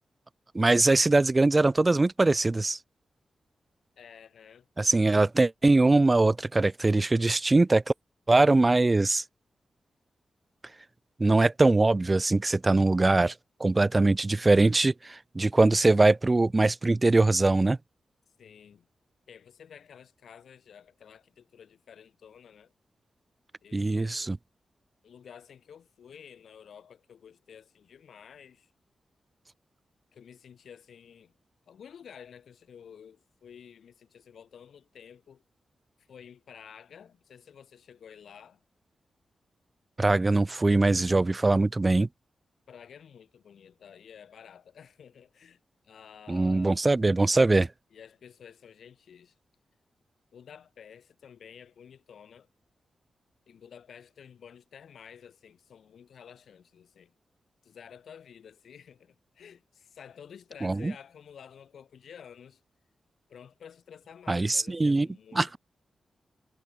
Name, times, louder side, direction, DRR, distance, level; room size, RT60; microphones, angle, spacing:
voice 1, 0.5-2.8 4.8-7.9 8.3-9.2 11.2-13.3 13.6-17.8 23.7-24.4 40.0-42.1 46.3-47.7 60.6-60.9 64.3-65.1 65.3-65.6, right 2 dB, 25° right, 0.4 m, -22 dB
voice 2, 4.0-4.7 18.4-18.9 19.3-22.7 23.6-24.3 25.0-28.7 30.1-31.3 31.7-35.4 36.1-38.6 42.7-46.8 47.9-49.3 50.3-52.5 53.5-57.2 57.6-62.6 63.3-65.6, left 8 dB, 85° left, 2.6 m, -51 dB
cardioid pair, 95°, 0 cm